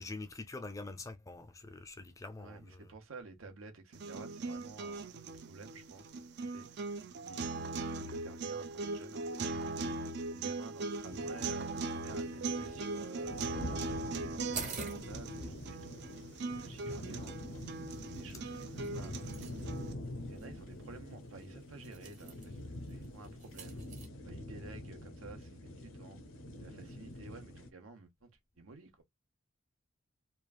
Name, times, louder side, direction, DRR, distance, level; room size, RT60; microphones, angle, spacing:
voice 1, 0.0-2.9 18.5-18.6, left 3 dB, 15° left, 0.3 m, -45 dB
voice 2, 2.4-6.7 7.2-10.1 10.3-13.7 14.3-17.6 18.1-19.8 20.3-23.8 24.2-26.2 26.6-28.3 28.6-29.0, right 3 dB, 80° right, 0.8 m, -52 dB
sound 1, 3.9-19.9, right 3 dB, 50° right, 0.4 m, -40 dB
sound 2, 11.0-27.7, left 1 dB, 65° left, 0.6 m, -46 dB
sound 3, 14.5-24.1, right 5 dB, 35° right, 0.9 m, -50 dB
3.1 x 2.4 x 2.3 m
head